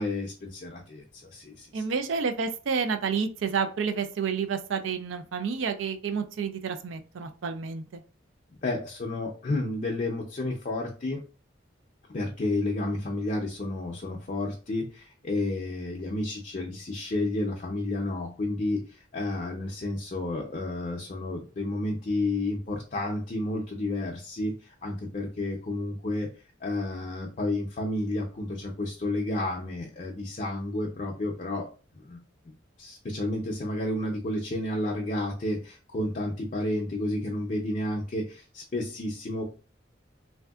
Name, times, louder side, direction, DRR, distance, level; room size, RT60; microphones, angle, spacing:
voice 1, 0.0-1.8 8.6-11.2 12.1-18.8 19.1-24.5 24.8-26.3 26.6-31.7 32.0-32.2 32.8-39.4, left 2 dB, 40° left, 0 dB, 0.4 m, -31 dB
voice 2, 1.7-8.0, right 6 dB, 85° right, 8 dB, 0.4 m, -30 dB
3.2 x 2.6 x 2.3 m, 0.36 s
head